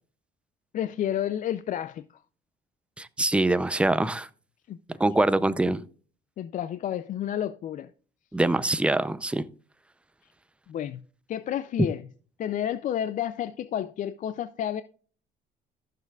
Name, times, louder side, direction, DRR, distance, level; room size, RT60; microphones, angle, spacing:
voice 1, 0.7-2.0 4.7-4.8 5.5-5.6 6.4-7.9 10.7-11.0 11.3-12.0 12.4-14.8, left 10 dB, 50° left, 0.4 m, -30 dB
voice 2, 3.0-4.3 5.0-5.8 8.3-9.5, right 2 dB, 5° right, 0.5 m, -24 dB
14.5 x 6.7 x 2.4 m
cardioid pair, 110°, 17 cm